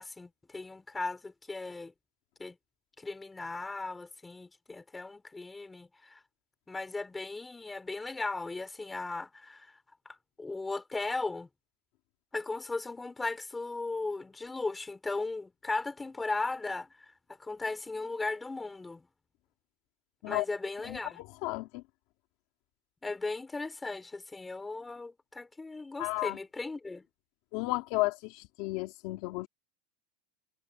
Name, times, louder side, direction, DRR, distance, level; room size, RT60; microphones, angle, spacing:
voice 1, 0.0-1.9 2.4-2.6 3.0-6.2 6.7-9.8 10.1-11.5 12.3-17.1 17.4-19.1 20.3-21.2 23.0-27.0, left 3 dB, 10° left, 4.2 m, -37 dB
voice 2, 20.8-21.8 26.0-26.4 27.5-29.5, left 21 dB, 45° left, 2.4 m, -33 dB
supercardioid pair, 165°, 0 cm